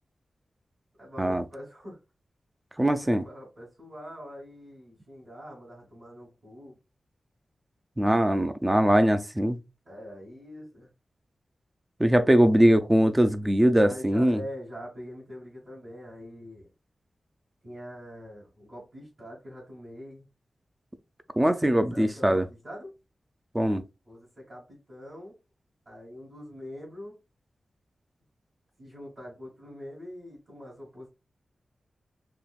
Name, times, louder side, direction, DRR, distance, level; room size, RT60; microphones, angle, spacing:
voice 1, 1.0-2.0 3.0-6.8 9.9-10.9 13.8-16.7 17.6-20.3 21.9-22.9 24.1-25.3 25.9-27.1 28.8-31.1, equal, 40° right, 1.8 m, -44 dB
voice 2, 2.8-3.3 8.0-9.6 12.0-14.4 21.4-22.4 23.5-23.8, right 1 dB, 10° right, 0.3 m, -21 dB
3.7 x 2.7 x 2.3 m
wide cardioid pair, 145°, 0 cm